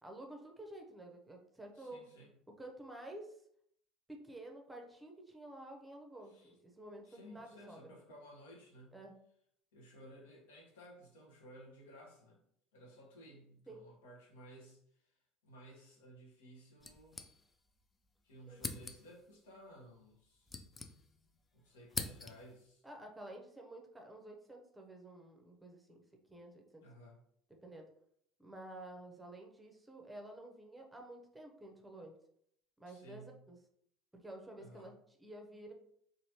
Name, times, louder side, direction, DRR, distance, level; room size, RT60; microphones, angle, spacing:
voice 1, 0.0-2.1 2.6-3.4 4.1-7.8 8.9-9.1 13.7-13.8 18.5-18.6 22.8-26.0 26.3-26.8 27.6-27.9 28.4-32.2 32.8-33.6 34.1-34.9 35.2-35.7, right 1 dB, 10° right, 2 dB, 0.7 m, -51 dB
voice 2, 1.7-2.3 6.2-6.5 7.0-9.0 9.7-12.4 12.7-17.2 18.2-20.5 21.5-22.8 26.8-27.2 32.9-33.5 34.6-35.0, equal, 70° left, -1 dB, 1.0 m, -56 dB
sound 1, 16.8-17.8 18.1-18.2 18.6-19.3 20.1-21.4 21.6-22.6, left 3 dB, 20° left, 0.4 m, -44 dB
4.2 x 2.6 x 2.9 m, 0.69 s
figure-of-eight pair, 65°, 0 cm